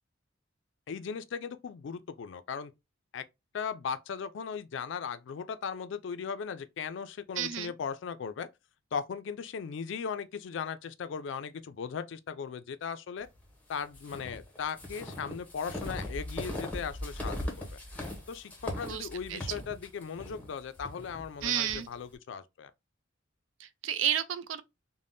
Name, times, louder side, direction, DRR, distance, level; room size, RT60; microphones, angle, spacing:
voice 1, 0.9-2.7 3.1-3.2 3.5-8.5 8.9-13.3 13.7-17.7 18.3-22.7, left 6 dB, 65° left, 0.3 m, -38 dB
voice 2, 7.4-7.7 18.8-19.4 21.4-21.9 23.6-24.6, right 10 dB, 75° right, 0.4 m, -31 dB
sound 1, 13.9-21.8, left 1 dB, 10° left, 0.7 m, -39 dB
3.3 x 2.1 x 2.5 m
head